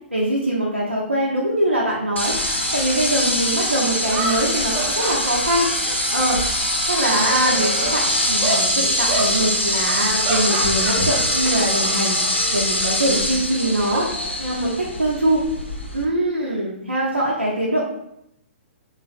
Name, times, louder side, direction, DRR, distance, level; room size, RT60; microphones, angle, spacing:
voice 1, 0.1-6.6 6.9-14.1 14.4-15.4 15.9-17.8, right 1 dB, 85° right, -5 dB, 0.6 m, -23 dB
sound 1, 2.2-16.0, left 1 dB, 85° left, 0.6 m, -23 dB
sound 2, 3.2-3.3 4.0-6.7 7.0-8.0 8.4-8.7 9.1-9.3 9.8-11.6 11.9-12.1 13.3-14.8, right 2 dB, 25° right, 0.5 m, -29 dB
3.3 x 2.4 x 2.4 m, 0.78 s
figure-of-eight pair, 120°, 6 cm